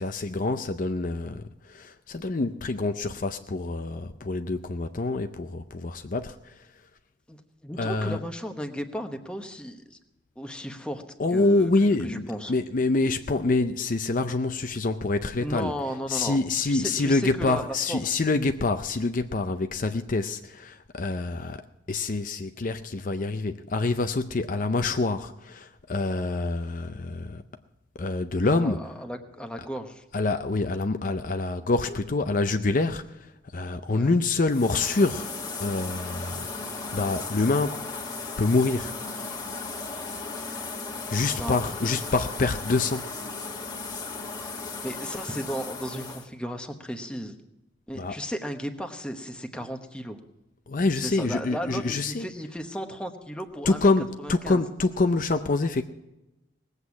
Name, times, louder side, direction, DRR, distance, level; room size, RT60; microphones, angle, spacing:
voice 1, 0.0-6.7 7.8-8.2 11.2-15.7 16.1-21.6 21.9-27.4 28.0-28.8 30.1-35.3 35.6-36.5 36.9-37.8 38.4-38.9 41.1-43.1 48.0-48.2 50.7-52.3 53.7-55.8, left 3 dB, 45° left, 8 dB, 0.5 m, -26 dB
voice 2, 7.3-10.0 10.4-11.0 11.3-12.5 15.4-16.4 16.6-18.2 28.5-30.0 33.9-34.1 41.4-41.6 44.8-47.3 47.9-50.2 50.9-53.9 54.2-54.6, equal, 5° left, 5 dB, 1.0 m, -35 dB
sound 1, 34.5-46.3, left 4 dB, 20° left, 1.4 m, -36 dB
19.0 x 8.1 x 7.1 m, 0.96 s
head